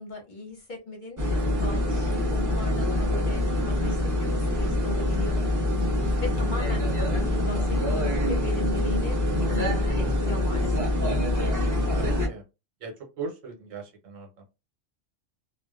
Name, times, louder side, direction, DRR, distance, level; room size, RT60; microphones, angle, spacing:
voice 1, 0.0-3.4 3.7-5.4 6.2-9.1 9.5-10.8, left 1 dB, 50° left, 0 dB, 0.6 m, -38 dB
sound 1, 1.2-12.3, left 1 dB, 30° right, 0.4 m, -25 dB
voice 2, 6.9-7.3 11.8-12.4 12.8-14.4, right 4 dB, 90° right, 1 dB, 1.2 m, -40 dB
2.5 x 2.1 x 2.3 m, 0.27 s
omnidirectional pair, 1.3 m